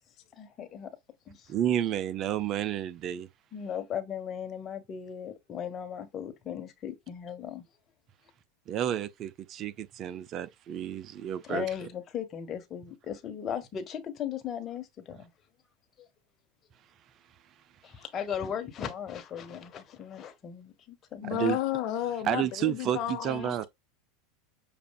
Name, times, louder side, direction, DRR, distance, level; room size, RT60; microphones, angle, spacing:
voice 1, 0.3-0.9 1.3-1.5 3.5-7.6 11.4-15.3 16.0-16.1 17.8-21.6, left 8 dB, 35° left, 1.4 m, -37 dB
voice 2, 1.5-3.3 8.7-11.7 21.2-21.6 22.2-23.7, right 10 dB, 45° right, 0.5 m, -31 dB
voice 3, 21.2-23.7, left 12 dB, 55° left, 0.8 m, -32 dB
6.7 x 2.5 x 2.4 m
hypercardioid pair, 90°, 0 cm